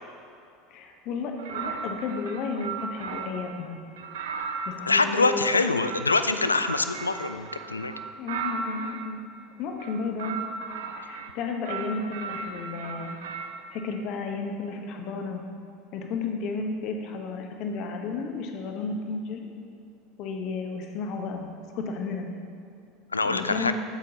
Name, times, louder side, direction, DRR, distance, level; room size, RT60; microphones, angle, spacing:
voice 1, 0.7-3.8 4.7-5.6 8.2-9.2 9.6-10.4 11.0-13.2 13.7-15.4 15.9-19.5 20.2-22.3 23.3-23.7, left 4 dB, 50° left, 3 dB, 0.9 m, -33 dB
sound 1, 1.4-3.5 4.0-9.1 9.7-11.3 11.6-13.6, right 5 dB, 65° right, 0.6 m, -36 dB
voice 2, 4.9-7.9 23.1-23.7, left 3 dB, 85° left, 10 dB, 0.3 m, -24 dB
8.9 x 7.6 x 2.9 m, 2.5 s
figure-of-eight pair, 75°, 0 cm